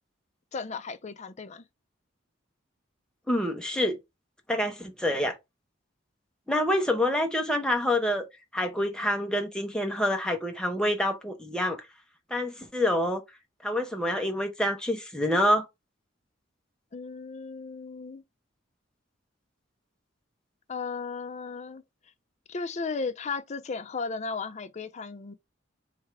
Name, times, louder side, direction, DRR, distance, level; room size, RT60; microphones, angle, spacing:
voice 1, 0.5-1.6 16.9-18.2 20.7-21.8 22.5-25.3, left 4 dB, 35° left, 0.5 m, -35 dB
voice 2, 3.3-4.0 4.5-5.4 6.5-8.3 8.5-11.8 12.3-13.2 13.6-15.7, left 1 dB, 5° left, 0.9 m, -27 dB
3.6 x 3.2 x 4.7 m
head